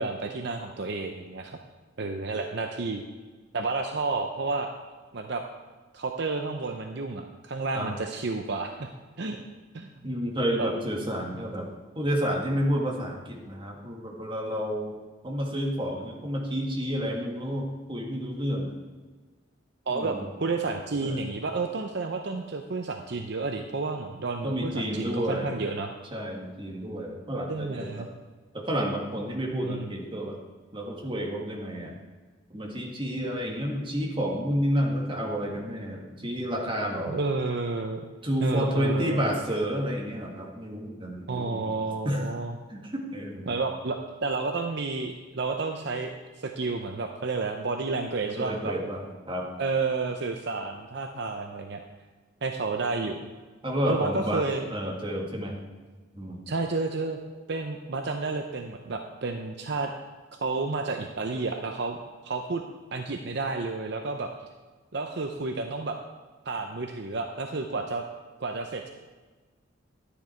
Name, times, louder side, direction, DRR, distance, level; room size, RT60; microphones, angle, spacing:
voice 1, 0.0-1.6 2.0-3.0 3.5-4.7 5.1-5.4 5.9-8.9 9.2-9.4 9.7-9.9 10.6-10.7 19.9-25.9 27.5-28.1 29.5-29.9 37.1-38.0 38.4-39.3 41.3-42.5 43.5-48.7 49.6-51.8 52.4-53.2 53.8-54.6 56.5-57.2 57.5-59.9 60.4-62.0 62.2-62.6 62.9-64.3 64.9-66.0 66.5-68.0 68.4-68.9, right 3 dB, 60° right, 4 dB, 0.7 m, -31 dB
voice 2, 10.0-11.7 11.9-14.9 15.2-18.8 19.9-20.3 21.0-21.3 24.4-25.6 26.1-28.1 28.5-30.4 30.7-32.0 32.5-37.2 38.2-41.7 42.0-42.2 42.7-43.6 48.3-49.5 53.6-54.4 54.7-55.6 56.1-56.4, equal, 25° right, -1 dB, 1.9 m, -30 dB
12.0 x 10.0 x 4.5 m, 1.3 s
head